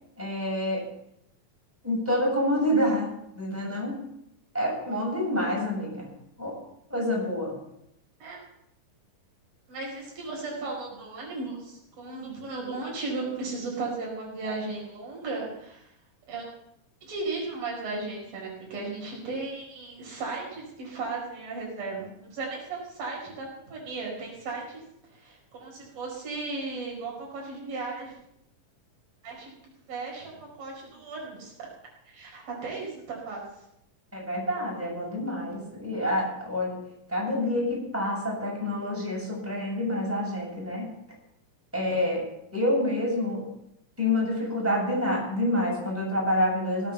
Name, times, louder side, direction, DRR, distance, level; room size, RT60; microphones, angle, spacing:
voice 1, 0.2-0.8 1.8-3.1 3.3-4.0 4.5-6.1 6.4-6.5 6.9-7.5 34.1-36.8 37.1-40.9 41.7-42.3 42.5-43.4 44.0-46.9, left 1 dB, 5° right, -4 dB, 7.2 m, -27 dB
voice 2, 9.7-15.9 16.3-16.5 17.0-24.8 25.1-28.1 29.2-29.5 29.9-31.7 32.1-33.4, right 3 dB, 85° right, -2 dB, 6.5 m, -35 dB
17.5 x 9.4 x 7.0 m, 0.80 s
omnidirectional pair, 3.9 m